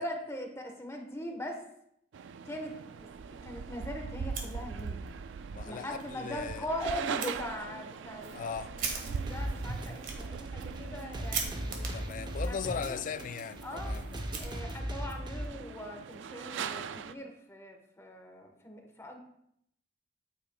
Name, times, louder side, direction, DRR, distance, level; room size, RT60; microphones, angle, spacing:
voice 1, 0.0-1.6 2.4-3.1 3.4-5.0 5.6-8.4 8.8-11.9 12.5-13.0 13.6-14.0 14.4-19.2, left 1 dB, 15° left, 1.1 m, -41 dB
sound 1, 2.1-17.1, right 5 dB, 75° right, 0.4 m, -41 dB
Fire, 4.2-5.1 5.4-5.5 6.0-6.1 7.2-7.3 7.9-15.0, right 5 dB, 50° right, 1.4 m, -42 dB
voice 2, 5.5-6.7 8.3-8.8 11.9-14.2, left 6 dB, 45° left, 0.3 m, -38 dB
sound 2, 9.2-15.5, equal, 25° right, 0.8 m, -37 dB
9.1 x 8.5 x 2.2 m
head